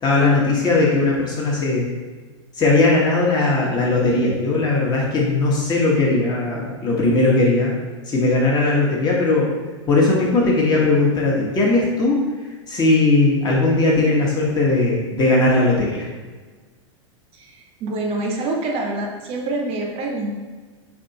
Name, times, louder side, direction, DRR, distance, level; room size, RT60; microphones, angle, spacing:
voice 1, 0.0-1.9 2.5-7.7 8.1-9.5 9.9-12.2 12.7-16.1, left 2 dB, 25° left, -4 dB, 1.0 m, -18 dB
voice 2, 17.3-20.4, right 2 dB, 40° right, 0 dB, 0.6 m, -26 dB
3.5 x 3.1 x 2.7 m, 1.3 s
hypercardioid pair, 100°, 16 cm